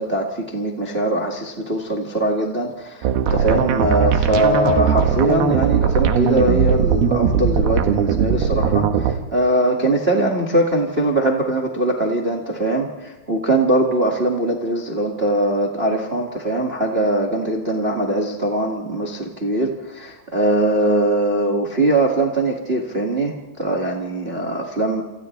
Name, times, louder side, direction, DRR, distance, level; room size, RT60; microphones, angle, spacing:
voice 1, 0.0-25.0, right 1 dB, 25° right, 0 dB, 1.3 m, -21 dB
sound 1, 3.0-9.2, right 7 dB, 75° right, 3.2 m, -19 dB
29.0 x 27.0 x 3.4 m, 1.1 s
omnidirectional pair, 4.7 m